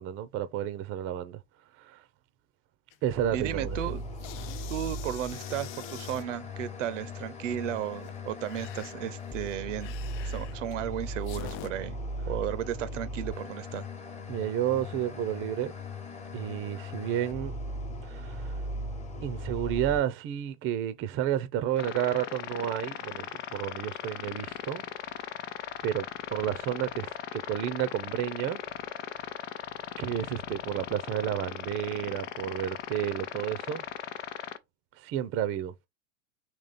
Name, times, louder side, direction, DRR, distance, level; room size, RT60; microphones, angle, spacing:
voice 1, 0.0-1.4 1.8-2.0 3.0-3.8 14.3-15.7 16.3-17.6 18.1-18.5 19.2-24.9 25.8-28.6 30.0-33.8 35.0-35.7, right 11 dB, 35° right, 0.6 m, -31 dB
sound 1, 2.9-3.3 3.6-6.3 7.9-11.7, left 12 dB, 35° left, 0.4 m, -46 dB
sound 2, 3.1-20.0, left 1 dB, 15° left, 1.1 m, -38 dB
voice 2, 3.3-4.0 4.7-9.9 10.2-12.0 12.3-13.8, right 11 dB, 70° right, 0.7 m, -34 dB
sound 3, 21.8-34.6, left 10 dB, 70° left, 0.8 m, -39 dB
3.7 x 2.9 x 4.1 m
hypercardioid pair, 100°, 38 cm